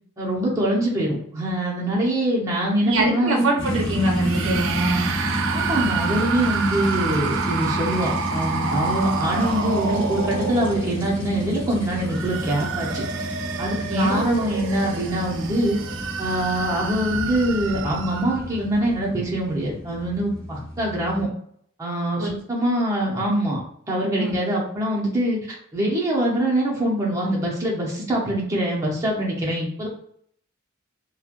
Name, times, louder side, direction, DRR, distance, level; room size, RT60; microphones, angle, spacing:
voice 1, 0.2-3.5 5.5-13.0 13.6-15.8 16.2-21.3 21.8-23.6 23.9-25.4 25.7-29.9, right 1 dB, 15° right, -5 dB, 0.8 m, -24 dB
voice 2, 2.8-5.1 13.9-14.2 22.2-22.3 24.2-24.4, right 1 dB, 85° right, 0 dB, 0.8 m, -23 dB
sound 1, 3.6-21.2, left 1 dB, 25° left, 1.3 m, -31 dB
sound 2, 4.2-11.2 11.9-18.4, right 6 dB, 70° right, 0.3 m, -29 dB
3.1 x 2.3 x 2.5 m, 0.66 s
head